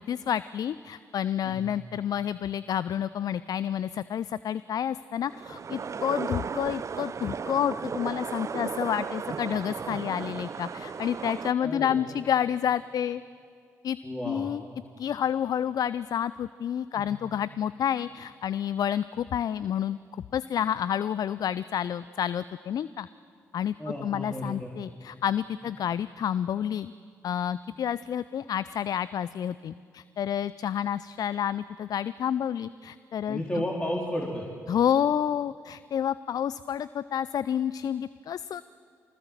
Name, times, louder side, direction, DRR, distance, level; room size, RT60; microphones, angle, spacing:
voice 1, 0.0-13.2 13.8-14.0 14.2-14.6 15.0-20.0 20.3-23.1 23.5-23.7 24.0-26.9 27.2-33.4 34.7-38.6, left 9 dB, 55° left, 17 dB, 0.5 m, -29 dB
sound 1, 5.2-11.5, right 6 dB, 40° right, 0.6 m, -35 dB
voice 2, 11.6-12.0 14.0-14.5 16.9-17.1 23.8-24.7 33.3-34.5, equal, 15° left, -3 dB, 3.8 m, -33 dB
25.0 x 20.0 x 7.4 m, 2.3 s
hypercardioid pair, 40°, 8 cm